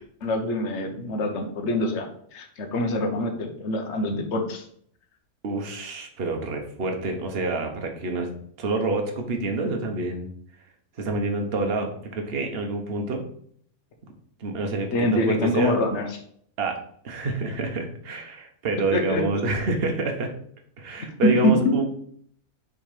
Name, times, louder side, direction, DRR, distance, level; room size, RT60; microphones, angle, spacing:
voice 1, 0.2-4.6 14.9-16.1 18.9-19.2 21.4-21.7, left 1 dB, 55° left, 4 dB, 1.3 m, -25 dB
voice 2, 5.4-8.3 8.6-10.3 11.0-13.2 14.4-15.8 16.6-16.8 17.0-20.3 20.8-21.9, right 2 dB, 45° right, 3 dB, 1.2 m, -27 dB
6.0 x 3.8 x 5.0 m, 0.62 s
omnidirectional pair, 1.6 m